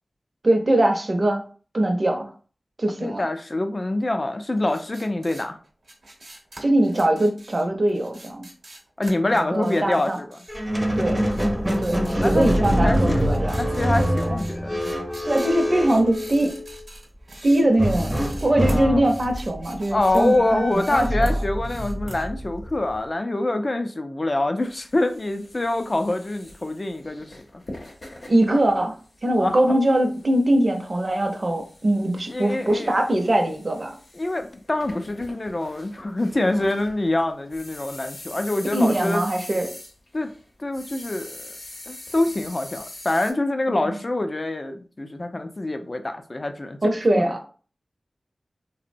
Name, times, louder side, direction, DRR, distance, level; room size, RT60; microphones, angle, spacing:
voice 1, 0.4-1.4 1.7-2.3 2.8-3.2 6.6-8.5 9.3-10.2 11.0-11.3 11.8-13.7 15.2-16.6 17.4-21.3 28.3-29.0 29.2-33.9 38.7-39.7 43.9-44.0 46.8-47.4, right 1 dB, 55° right, 3 dB, 0.5 m, -22 dB
voice 2, 3.0-5.6 9.0-10.4 10.8-11.0 12.1-13.3 13.6-14.8 18.7-19.1 19.9-27.3 27.5-27.6 29.4-29.5 32.3-32.9 34.1-39.2 40.1-40.3 40.6-41.5 41.9-46.8 47.2-47.3, left 2 dB, 45° left, 7 dB, 0.4 m, -25 dB
sound 1, 4.6-10.9 11.2-20.4 20.6-22.2, right 1 dB, 90° right, 0.8 m, -45 dB
Squeak, 10.5-16.8 17.8-23.0, equal, 10° right, 0.5 m, -25 dB
sound 2, 24.6-40.5 40.7-43.3, left 1 dB, 75° left, 0.7 m, -44 dB
2.8 x 2.0 x 2.5 m, 0.40 s
cardioid pair, 40°, 0 cm